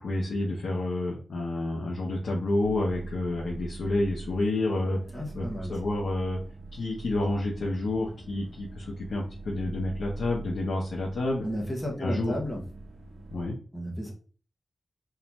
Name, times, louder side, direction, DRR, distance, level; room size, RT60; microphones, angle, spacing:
voice 1, 0.0-5.0 5.3-6.4 6.7-11.4 12.0-12.4 13.3-13.6, left 2 dB, 75° left, -2 dB, 0.9 m, -29 dB
sound 1, 2.6-13.5, right 3 dB, 70° right, 0.9 m, -43 dB
voice 2, 5.1-5.7 11.4-12.6 13.7-14.1, equal, 5° left, -1 dB, 1.1 m, -33 dB
3.7 x 2.8 x 2.9 m, 0.41 s
wide cardioid pair, 130°, 0 cm